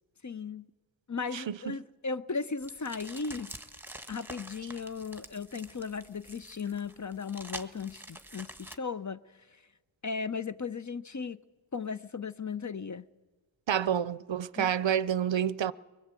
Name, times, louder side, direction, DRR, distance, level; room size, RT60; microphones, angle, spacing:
voice 1, 0.2-0.7 1.1-3.5 4.1-9.2 10.0-11.4 11.7-13.0 14.6-14.8, left 5 dB, 35° left, 0.6 m, -36 dB
voice 2, 1.3-1.8 13.7-15.7, right 9 dB, 65° right, 0.6 m, -29 dB
sound 1, 2.6-8.8, right 1 dB, 5° right, 1.3 m, -47 dB
23.0 x 20.5 x 8.2 m
wide cardioid pair, 65°, 50 cm